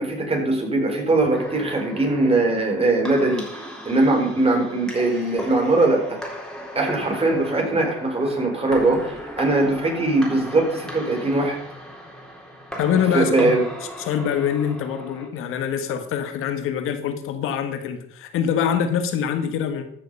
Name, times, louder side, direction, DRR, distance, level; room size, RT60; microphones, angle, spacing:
voice 1, 0.0-3.4 3.8-6.2 6.7-11.6 13.1-13.6, right 2 dB, 30° right, 4.2 m, -21 dB
sound 1, 1.3-15.3, equal, 5° left, 4.1 m, -37 dB
voice 2, 12.8-13.6 14.0-19.8, left 8 dB, 80° left, 1.6 m, -24 dB
13.5 x 6.7 x 5.4 m
cardioid pair, 90°, 21 cm